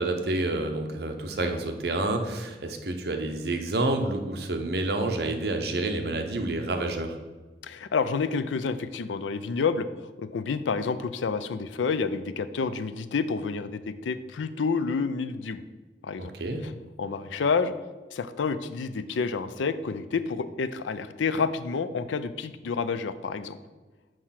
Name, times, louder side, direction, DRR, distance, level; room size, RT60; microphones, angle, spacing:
voice 1, 0.0-7.2 16.2-16.6, right 2 dB, 55° right, 5 dB, 0.8 m, -29 dB
voice 2, 7.6-9.9 10.2-15.6 16.0-16.3 16.6-16.7 17.0-17.7 18.1-23.6, left 5 dB, 85° left, 13 dB, 0.4 m, -29 dB
6.5 x 4.5 x 5.8 m, 1.3 s
head